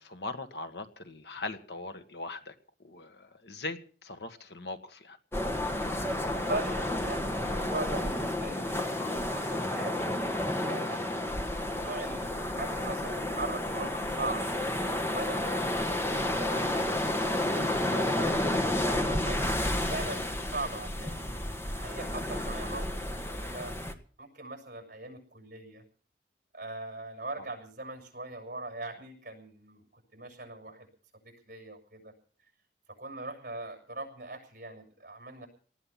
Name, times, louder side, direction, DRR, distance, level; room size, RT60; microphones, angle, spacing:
voice 1, 0.0-2.5 2.8-5.2, left 2 dB, 70° left, 8 dB, 1.7 m, -40 dB
sound 1, 5.3-23.9, left 1 dB, 15° left, 1.5 m, -31 dB
voice 2, 6.3-11.1 11.6-14.5 15.1-19.4 19.9-21.3 21.7-23.7 24.2-25.8 26.5-30.9 31.2-32.1 33.0-35.5, right 2 dB, 50° right, 4 dB, 6.6 m, -40 dB
19.0 x 12.5 x 5.8 m, 0.44 s
head